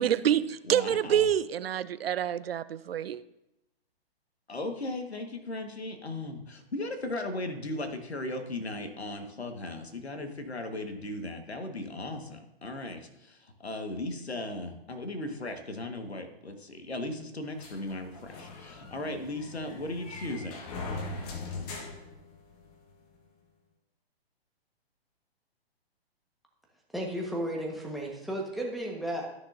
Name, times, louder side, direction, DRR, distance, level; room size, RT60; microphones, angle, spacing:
voice 1, 0.0-3.2, right 10 dB, 70° right, 0.5 m, -27 dB
voice 2, 0.7-1.3 4.5-20.6, left 2 dB, 90° left, 1.5 m, -37 dB
sound 1, 17.6-22.8, left 3 dB, 35° left, 1.6 m, -41 dB
voice 3, 26.9-29.2, right 1 dB, ahead, 1.3 m, -33 dB
13.5 x 6.3 x 2.6 m
hypercardioid pair, 130°, 31 cm